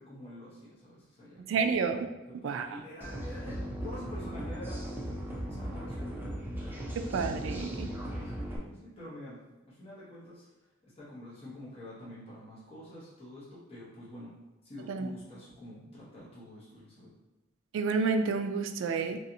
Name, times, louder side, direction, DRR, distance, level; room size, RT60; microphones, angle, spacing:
voice 1, 0.0-1.4 2.2-4.8 5.5-6.6 7.9-8.3 8.6-9.4 9.7-10.5 11.0-14.3 14.6-17.1, left 1 dB, 30° left, -10 dB, 0.9 m, -47 dB
voice 2, 1.5-2.1 2.4-2.8 7.0-7.9 14.9-15.1 17.7-19.2, right 5 dB, 70° right, 7 dB, 0.3 m, -30 dB
sound 1, 3.0-8.6, equal, 10° right, 0.5 m, -37 dB
3.1 x 2.7 x 2.7 m, 1.0 s
head